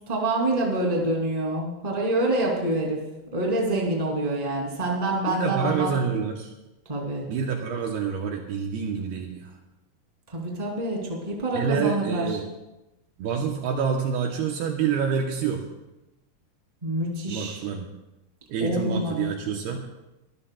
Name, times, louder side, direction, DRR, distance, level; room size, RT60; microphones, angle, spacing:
voice 1, 0.1-3.0 3.3-5.9 6.9-7.3 10.3-12.4 16.8-17.6 18.6-19.3, right 1 dB, 10° right, -2 dB, 2.0 m, -26 dB
voice 2, 5.3-6.5 7.3-9.5 11.5-12.4 13.2-15.7 17.3-17.9 18.5-19.8, right 6 dB, 75° right, 2 dB, 2.6 m, -27 dB
23.0 x 14.5 x 2.3 m, 0.98 s
omnidirectional pair, 5.1 m